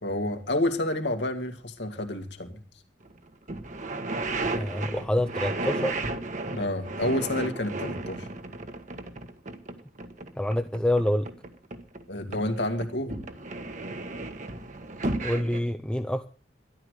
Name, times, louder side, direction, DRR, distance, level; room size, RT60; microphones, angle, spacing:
voice 1, 0.0-2.6 6.5-8.3 12.1-13.2, left 1 dB, 80° left, 5 dB, 2.4 m, -29 dB
sound 1, 3.1-3.2 3.5-12.0 12.3-15.6, right 2 dB, 45° right, 1.5 m, -34 dB
voice 2, 4.5-6.0 10.4-11.3 15.2-16.3, left 1 dB, 5° left, 7 dB, 0.6 m, -27 dB
13.0 x 11.5 x 6.6 m, 0.39 s
head